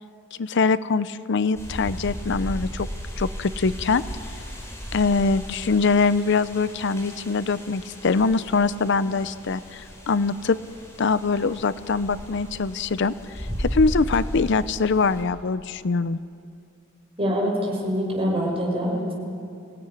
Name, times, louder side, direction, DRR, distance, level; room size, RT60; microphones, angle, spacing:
voice 1, 0.4-2.9 3.2-4.0 4.9-10.6 11.0-16.2, left 4 dB, 60° left, 15 dB, 0.5 m, -23 dB
sound 1, 1.5-15.2, equal, 15° left, 4.9 m, -35 dB
voice 2, 17.2-19.1, equal, 30° right, -1 dB, 6.0 m, -25 dB
26.0 x 17.0 x 9.9 m, 2.5 s
head